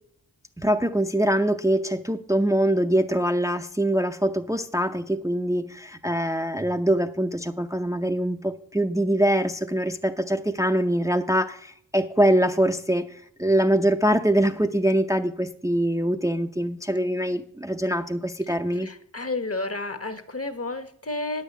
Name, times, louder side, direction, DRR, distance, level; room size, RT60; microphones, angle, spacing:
voice 1, 0.6-18.9, right 1 dB, 10° right, 5 dB, 0.6 m, -23 dB
voice 2, 18.8-21.4, left 2 dB, 35° left, 10 dB, 1.1 m, -31 dB
9.4 x 5.7 x 8.2 m, 0.63 s
wide cardioid pair, 45°, 39 cm